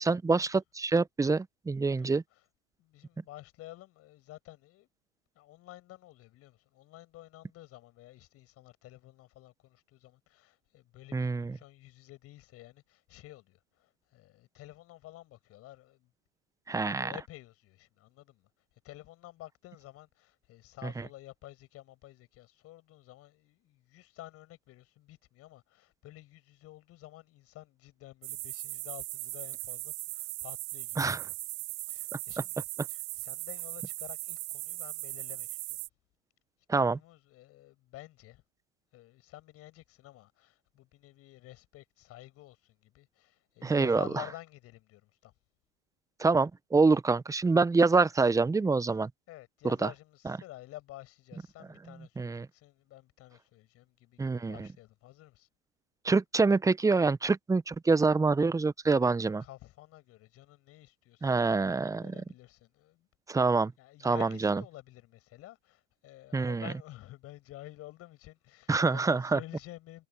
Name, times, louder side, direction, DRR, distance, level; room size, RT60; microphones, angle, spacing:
voice 1, 0.0-2.2 11.1-11.6 16.7-17.1 20.8-21.1 31.0-31.2 36.7-37.0 43.6-44.2 46.2-49.1 49.6-49.9 50.2-50.4 52.2-52.5 54.2-54.7 56.0-59.4 61.2-62.2 63.3-63.7 64.0-64.6 66.3-66.7 68.7-69.4, right 4 dB, 10° right, 1.2 m, -26 dB
voice 2, 2.8-4.9 5.3-16.1 16.7-18.5 18.8-31.3 31.9-35.6 36.8-38.4 38.9-45.3 49.3-55.5 59.4-63.1 63.8-70.1, left 16 dB, 35° left, 6.4 m, -51 dB
sound 1, 28.2-35.9, right 37 dB, 40° right, 1.0 m, -39 dB
figure-of-eight pair, 95°, 38 cm